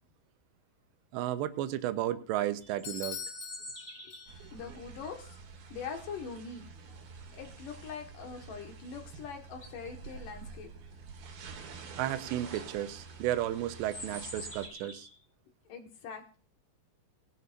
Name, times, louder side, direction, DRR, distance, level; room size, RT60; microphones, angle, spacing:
voice 1, 1.1-3.2 4.4-4.5 12.0-15.1, right 13 dB, 80° right, 10 dB, 3.0 m, -33 dB
sound 1, 2.6-4.4 8.9-9.0 9.5-9.9 11.9-12.0 12.4-12.6 13.8-15.2, left 1 dB, 20° left, 2.3 m, -45 dB
Bell / Doorbell, 2.8-4.7, left 9 dB, 85° left, 4.3 m, -44 dB
sound 2, 4.3-14.7, right 5 dB, 60° right, 3.1 m, -48 dB
voice 2, 4.5-5.4 5.7-6.6 7.3-10.7 15.7-16.4, left 6 dB, 55° left, 4 dB, 2.8 m, -43 dB
20.0 x 11.0 x 2.6 m, 0.37 s
omnidirectional pair, 5.3 m